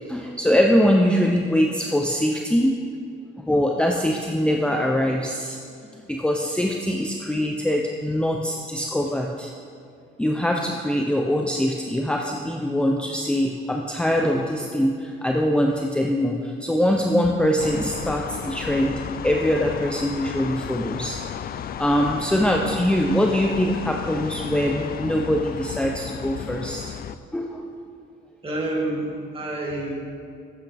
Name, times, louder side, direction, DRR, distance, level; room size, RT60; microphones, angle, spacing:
voice 1, 0.1-2.7 3.5-5.6 6.1-9.5 10.2-21.2 21.8-26.9 27.3-27.7, equal, 5° left, 1 dB, 0.6 m, -23 dB
sound 1, 17.6-27.2, left 8 dB, 50° left, 0.4 m, -33 dB
voice 2, 28.4-29.9, right 2 dB, 25° right, -2 dB, 2.4 m, -28 dB
12.0 x 8.2 x 3.5 m, 2.4 s
cardioid pair, 90°, 20 cm